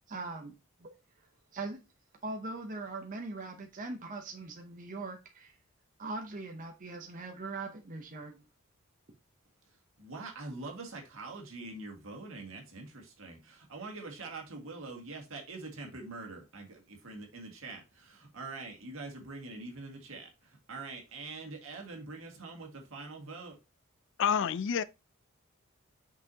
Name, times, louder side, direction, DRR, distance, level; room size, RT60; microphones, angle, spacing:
voice 1, 0.1-0.5 0.8-0.9 1.5-1.8 2.2-5.6 6.0-8.5, right 3 dB, 40° right, 0.7 m, -41 dB
voice 2, 10.0-23.6, right 3 dB, 65° right, 2.0 m, -44 dB
voice 3, 24.2-24.8, left 7 dB, 60° left, 0.4 m, -28 dB
6.1 x 5.6 x 2.8 m
head